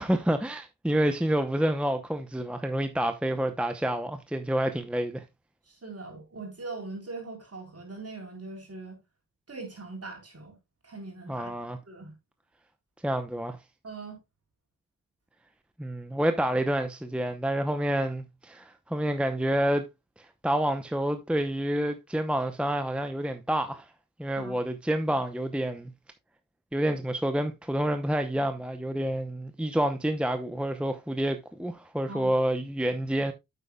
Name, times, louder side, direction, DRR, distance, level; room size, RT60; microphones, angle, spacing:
voice 1, 0.0-5.2 11.3-11.8 13.0-13.6 15.8-19.8 20.4-23.9 24.2-25.9 26.7-33.3, right 1 dB, 5° right, 0.7 m, -28 dB
voice 2, 5.7-9.0 9.5-10.6 10.8-11.5 11.8-12.1 13.8-14.2 24.4-24.5 32.1-32.3, right 3 dB, 45° right, 3.9 m, -41 dB
8.8 x 8.3 x 2.3 m
wide cardioid pair, 80°, 33 cm